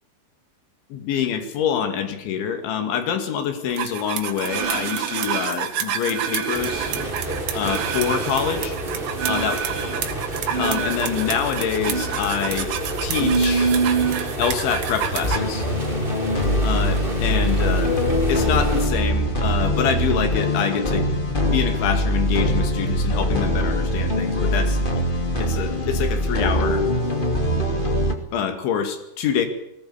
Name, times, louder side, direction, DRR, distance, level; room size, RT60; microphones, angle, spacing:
voice 1, 0.9-7.0 7.5-8.8 9.3-9.6 9.8-9.9 10.6-12.7 13.0-13.7 14.4-15.6 16.6-17.9 18.3-21.1 21.4-25.1 25.4-26.9 27.5-27.7 28.3-29.5, left 8 dB, 75° left, 8 dB, 4.6 m, -26 dB
sound 1, 3.8-15.4, right 7 dB, 75° right, 4.2 m, -25 dB
sound 2, 6.5-18.9, right 1 dB, 10° right, 4.6 m, -30 dB
sound 3, 15.2-28.1, equal, 20° left, 1.2 m, -22 dB
20.0 x 19.0 x 8.6 m, 0.79 s
omnidirectional pair, 5.5 m